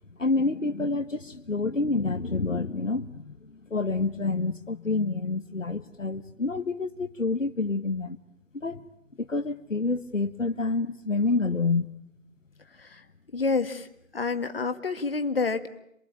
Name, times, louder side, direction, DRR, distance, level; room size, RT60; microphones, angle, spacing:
voice 1, 0.2-8.2 8.5-8.8 9.2-11.9, left 3 dB, 65° left, 8 dB, 1.6 m, -28 dB
voice 2, 13.3-13.9 14.1-15.7, left 4 dB, 45° left, 9 dB, 2.0 m, -28 dB
28.0 x 21.5 x 8.8 m, 0.76 s
figure-of-eight pair, 155°, 40 cm